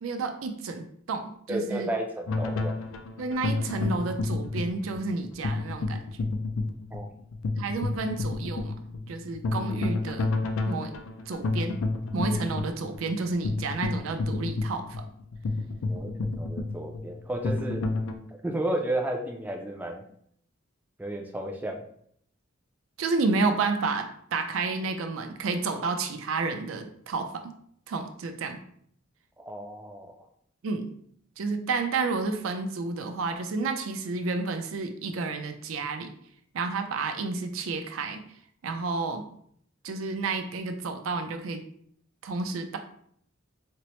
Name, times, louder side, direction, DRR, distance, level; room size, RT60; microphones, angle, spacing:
voice 1, 0.0-1.9 3.2-6.3 7.6-8.7 9.1-10.3 10.7-10.9 11.3-11.8 12.1-15.0 23.0-27.5 27.9-28.6 30.6-30.9 31.4-36.1 36.5-38.2 38.6-39.3 39.8-41.6 42.2-42.8, right 3 dB, 85° right, 6 dB, 0.4 m, -30 dB
voice 2, 1.5-2.8 6.9-7.1 15.9-17.8 18.4-20.0 21.0-21.8 29.4-30.1, right 1 dB, 10° right, 2 dB, 0.3 m, -32 dB
sound 1, 2.3-18.2, left 3 dB, 80° left, 0.4 m, -30 dB
4.3 x 2.0 x 2.9 m, 0.65 s
head